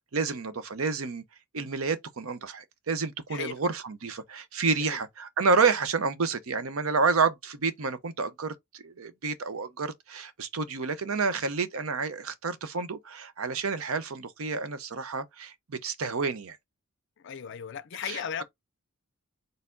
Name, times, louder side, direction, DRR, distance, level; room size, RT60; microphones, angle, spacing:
voice 1, 0.1-1.2 1.5-16.6 18.0-18.4, right 4 dB, 75° right, 0.7 m, -29 dB
voice 2, 17.2-18.4, left 8 dB, 55° left, 0.4 m, -36 dB
4.4 x 3.3 x 2.5 m
head